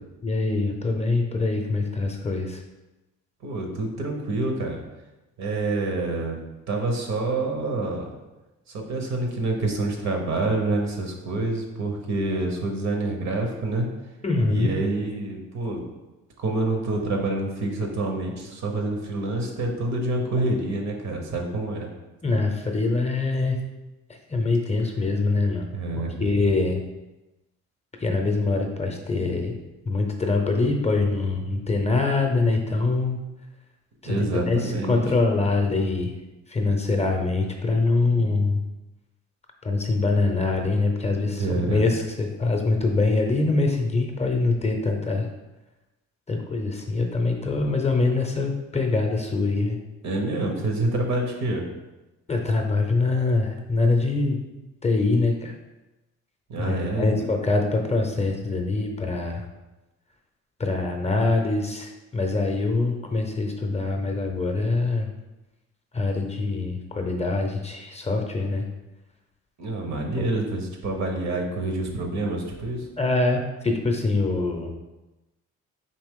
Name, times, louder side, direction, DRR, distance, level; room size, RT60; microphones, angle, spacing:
voice 1, 0.2-2.6 14.2-14.7 22.2-23.6 24.3-25.6 26.0-26.8 28.0-29.6 29.9-33.2 34.0-34.2 34.5-36.1 36.5-38.6 39.6-45.3 46.3-49.8 52.3-54.4 54.8-55.5 56.6-59.4 60.6-65.1 65.9-68.6 70.2-70.3 73.0-74.7, left 3 dB, 20° left, 3 dB, 0.6 m, -24 dB
voice 2, 3.4-4.8 5.4-6.4 6.7-8.1 8.7-13.9 14.5-15.8 16.4-21.9 25.7-26.1 34.0-35.0 38.1-38.2 41.2-41.8 50.0-51.6 56.5-57.2 69.6-72.9, right 2 dB, 65° right, 2 dB, 0.9 m, -27 dB
4.3 x 2.9 x 3.6 m, 1.0 s
cardioid pair, 90°, 30 cm